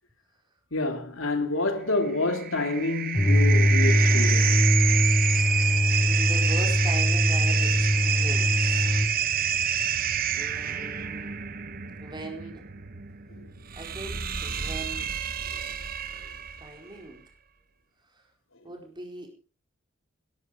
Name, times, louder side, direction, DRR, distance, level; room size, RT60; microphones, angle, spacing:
voice 1, 0.7-4.7, left 2 dB, 85° left, 3.0 m, -28 dB
sound 1, 2.1-16.7, right 8 dB, 45° right, 1.3 m, -28 dB
sound 2, 3.1-9.1, left 1 dB, 10° left, 1.3 m, -22 dB
voice 2, 6.0-8.8 10.3-11.5 12.0-12.6 13.7-15.1 16.6-17.2 18.1-18.2 18.6-19.3, right 2 dB, 25° right, 4.6 m, -40 dB
18.0 x 12.5 x 5.2 m
head